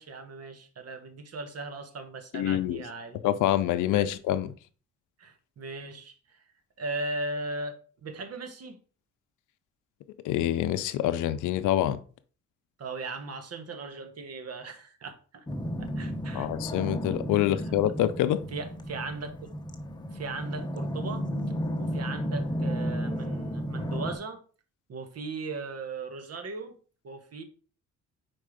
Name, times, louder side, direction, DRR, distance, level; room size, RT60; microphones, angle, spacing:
voice 1, 0.0-3.2 3.9-4.1 5.2-6.4 6.8-7.8 8.0-8.8 12.8-15.4 15.8-16.5 17.3-17.4 18.5-19.3 20.1-21.3 21.8-24.4 24.9-26.7 27.0-27.4, right 3 dB, 55° right, 1.3 m, -38 dB
voice 2, 2.3-2.8 3.2-4.5 10.2-12.0 16.3-18.4, left 12 dB, 90° left, 0.6 m, -26 dB
sound 1, 15.5-24.2, equal, 15° left, 0.8 m, -33 dB
4.6 x 4.5 x 5.0 m
cardioid pair, 90°, 30 cm